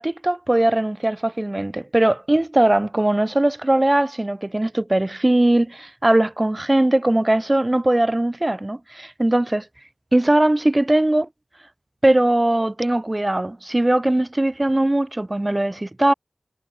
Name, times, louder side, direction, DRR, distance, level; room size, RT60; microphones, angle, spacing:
voice 1, 0.0-9.6 10.1-11.3 12.0-16.1, right 1 dB, 25° right, 1.3 m, -20 dB
wide cardioid pair, 70°, 0 cm